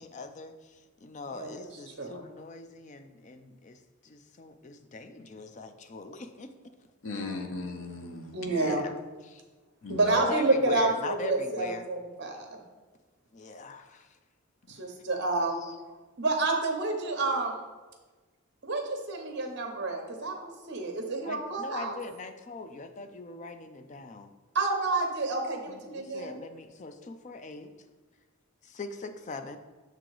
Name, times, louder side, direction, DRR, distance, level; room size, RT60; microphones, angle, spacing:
voice 1, 0.0-6.5 8.6-9.0 9.2-9.4 10.1-11.8 13.3-14.2 15.6-15.8 21.2-24.3 25.7-27.7 28.6-29.6, left 3 dB, 35° left, 8 dB, 0.4 m, -41 dB
voice 2, 7.0-8.7 9.8-10.2, left 3 dB, 65° left, 5 dB, 0.8 m, -37 dB
voice 3, 8.3-8.8 9.9-12.6 14.7-15.6 16.2-17.6 18.6-22.0 24.5-26.4, right 2 dB, 50° right, 3 dB, 0.9 m, -29 dB
6.6 x 3.9 x 4.7 m, 1.3 s
head